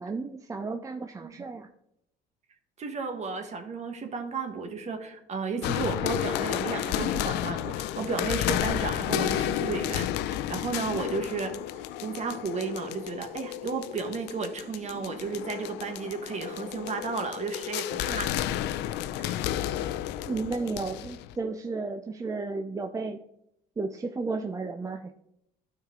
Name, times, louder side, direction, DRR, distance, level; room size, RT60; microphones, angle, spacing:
voice 1, 0.0-1.7 20.3-23.2 23.8-25.1, right 3 dB, 20° right, 6 dB, 0.5 m, -33 dB
voice 2, 2.8-11.5 12.0-18.3 19.1-19.4, right 4 dB, 40° right, 5 dB, 1.5 m, -33 dB
sound 1, 5.6-21.3, left 12 dB, 85° left, 0.5 m, -32 dB
12.5 x 4.7 x 3.8 m, 0.80 s
cardioid pair, 110°, 17 cm